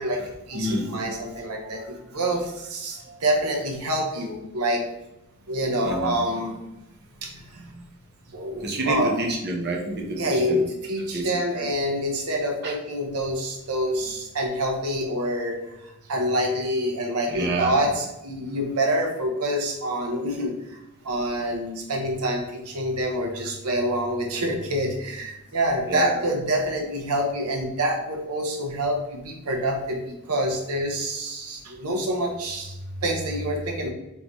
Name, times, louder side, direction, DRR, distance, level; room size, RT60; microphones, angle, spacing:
voice 1, 0.0-4.8 5.5-6.6 7.2-7.8 8.3-9.2 10.2-20.8 21.0-33.9, equal, 85° right, 1 dB, 0.8 m, -27 dB
voice 2, 0.5-0.9 1.7-1.9 3.0-3.2 5.8-6.1 8.6-10.6 11.1-11.7 12.6-12.7 17.3-17.8 25.8-26.1, right 2 dB, 50° right, -2 dB, 0.9 m, -28 dB
3.9 x 3.8 x 3.0 m, 0.94 s
head